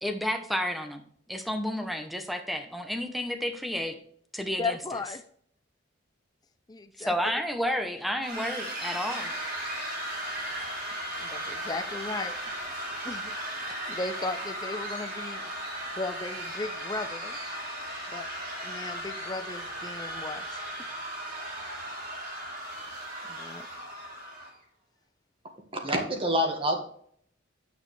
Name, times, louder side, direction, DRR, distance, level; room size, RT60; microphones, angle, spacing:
voice 1, 0.0-1.0 1.3-4.0 4.3-4.8 7.0-9.3, equal, ahead, 6 dB, 0.9 m, -31 dB
voice 2, 4.6-5.2 6.7-7.1 11.2-12.4 13.0-13.3 13.6-15.5 16.0-17.4 18.1-18.3 18.6-20.9 23.3-23.7, left 3 dB, 20° left, 9 dB, 0.5 m, -36 dB
sound 1, 8.2-24.5, right 1 dB, 50° right, 3.4 m, -36 dB
voice 3, 25.8-26.8, equal, 30° right, 3 dB, 1.6 m, -26 dB
9.6 x 6.1 x 3.3 m, 0.63 s
head